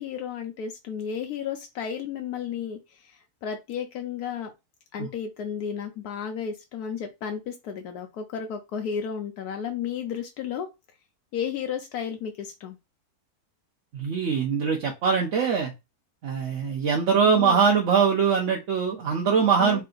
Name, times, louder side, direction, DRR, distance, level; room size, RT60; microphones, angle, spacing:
voice 1, 0.0-2.8 3.1-4.5 4.9-10.7 11.3-12.8 17.3-17.6 19.6-19.8, left 7 dB, 75° left, 4 dB, 1.1 m, -33 dB
voice 2, 13.9-15.7 16.2-19.8, right 6 dB, 60° right, 0 dB, 0.9 m, -22 dB
3.4 x 2.7 x 3.8 m, 0.24 s
omnidirectional pair, 1.7 m